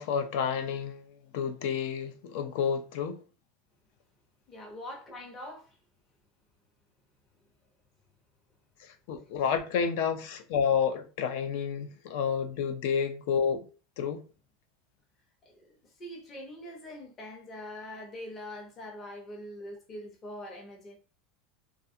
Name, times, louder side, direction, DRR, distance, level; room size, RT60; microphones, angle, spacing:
voice 1, 0.0-3.2 9.1-13.7 14.0-14.2, left 7 dB, 70° left, 0.4 m, -30 dB
voice 2, 4.5-5.8 15.4-21.0, left 1 dB, 30° left, 0.8 m, -43 dB
2.4 x 2.4 x 2.6 m
supercardioid pair, 135°, 0 cm